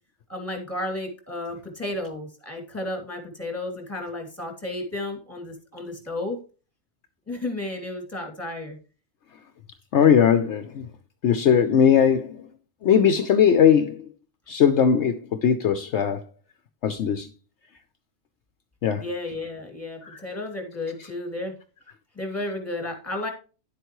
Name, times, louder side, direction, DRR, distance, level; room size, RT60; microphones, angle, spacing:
voice 1, 0.3-6.4 7.3-8.8 19.0-21.5 22.2-23.3, left 2 dB, 10° left, 2.6 m, -32 dB
voice 2, 9.9-10.9 11.2-12.4 12.8-14.0 14.5-16.2 16.8-17.3 18.8-19.0 20.0-20.2, left 8 dB, 65° left, 0.9 m, -19 dB
11.0 x 7.9 x 3.0 m
omnidirectional pair, 1.3 m